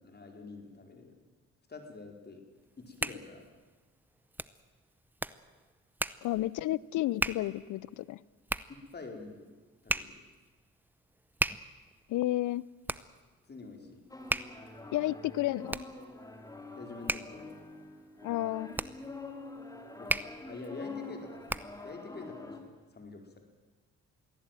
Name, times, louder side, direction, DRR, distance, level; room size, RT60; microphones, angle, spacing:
voice 1, 0.0-1.2 1.7-2.4 2.8-3.4 8.7-9.5 9.8-10.2 13.5-14.0 16.7-17.7 20.0-21.5 21.8-23.4, left 3 dB, 35° left, 4 dB, 4.5 m, -46 dB
Hands, 2.6-21.9, right 1 dB, 5° right, 0.7 m, -39 dB
voice 2, 6.2-8.2 12.1-12.6 14.9-15.8 18.2-18.7, left 16 dB, 80° left, 22 dB, 0.7 m, -31 dB
sound 1, 14.1-22.6, left 3 dB, 10° left, 2.9 m, -46 dB
22.5 x 15.5 x 9.1 m, 1.3 s
cardioid pair, 90°, 30 cm